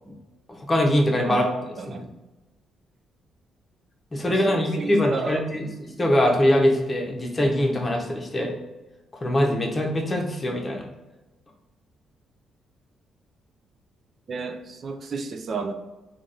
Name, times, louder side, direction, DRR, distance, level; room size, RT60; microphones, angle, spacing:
voice 1, 0.6-1.4 1.9-2.0 4.1-8.5 9.2-10.8, left 1 dB, 25° left, 1 dB, 0.7 m, -22 dB
voice 2, 1.8-2.1 4.3-5.4 14.3-15.7, right 4 dB, 50° right, 7 dB, 0.4 m, -32 dB
3.4 x 2.3 x 3.9 m, 1.1 s
cardioid pair, 90°, 0 cm